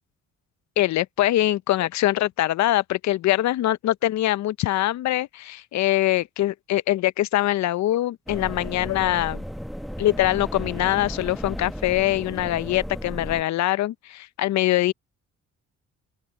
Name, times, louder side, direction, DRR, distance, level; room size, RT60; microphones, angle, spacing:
voice 1, 0.8-9.4 10.0-14.9, left 15 dB, 65° left, 0.6 m, -23 dB
sound 1, 8.3-13.4, equal, ahead, 1.0 m, -34 dB
open air
cardioid pair, 90°, 30 cm